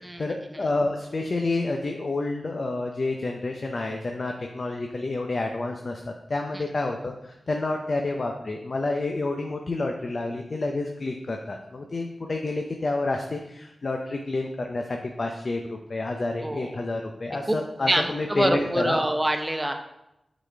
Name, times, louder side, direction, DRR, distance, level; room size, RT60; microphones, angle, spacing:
voice 1, 0.0-19.0, left 2 dB, 50° left, 2 dB, 0.6 m, -29 dB
voice 2, 16.4-16.8 17.5-17.6 17.9-19.7, right 1 dB, 15° right, 5 dB, 0.7 m, -25 dB
7.9 x 4.1 x 3.4 m, 0.87 s
wide cardioid pair, 95°, 0 cm